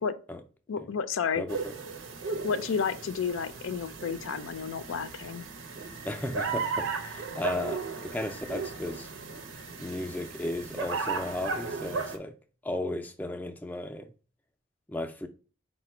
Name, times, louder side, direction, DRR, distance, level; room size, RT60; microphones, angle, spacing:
voice 1, 0.7-1.5 2.4-5.5, left 6 dB, 85° left, 0.4 m, -31 dB
voice 2, 1.4-1.7 6.0-9.1 9.8-12.3 12.6-14.1 14.9-15.3, left 1 dB, 10° left, 0.3 m, -35 dB
sound 1, 1.5-12.2, right 4 dB, 85° right, 0.7 m, -36 dB
4.8 x 2.2 x 4.3 m
head